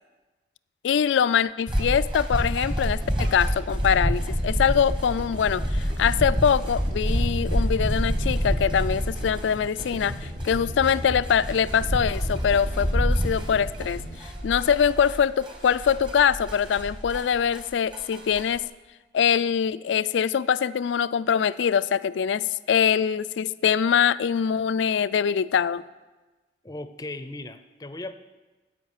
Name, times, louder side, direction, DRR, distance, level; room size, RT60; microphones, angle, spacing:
voice 1, 0.8-14.0 14.4-18.6 19.1-25.8, left 7 dB, 85° left, 17 dB, 0.3 m, -23 dB
sound 1, 1.7-17.6 17.9-18.6, equal, 25° right, 1.2 m, -28 dB
sound 2, 3.0-15.3 15.7-15.8, equal, 80° right, 3.7 m, -38 dB
voice 2, 26.6-28.1, left 2 dB, 20° left, 11 dB, 0.5 m, -37 dB
15.5 x 5.5 x 6.5 m, 1.2 s
head